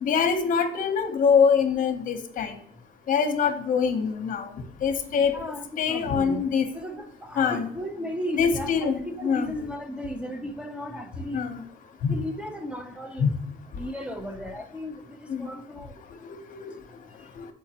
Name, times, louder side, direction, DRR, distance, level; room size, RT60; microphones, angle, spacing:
voice 1, 0.0-2.5 3.1-4.5 4.8-5.3 5.8-6.7 7.4-7.7 8.3-9.5 11.3-11.6 12.0-12.1 13.2-13.3 15.3-15.5 16.2-16.3 16.6-16.7 17.4-17.5, left 6 dB, 50° left, 7 dB, 0.8 m, -24 dB
voice 2, 5.2-6.4 6.7-11.4 12.1-13.3 13.7-15.9, equal, 5° right, 5 dB, 0.6 m, -35 dB
7.1 x 4.6 x 2.9 m, 0.71 s
cardioid pair, 110°, 17 cm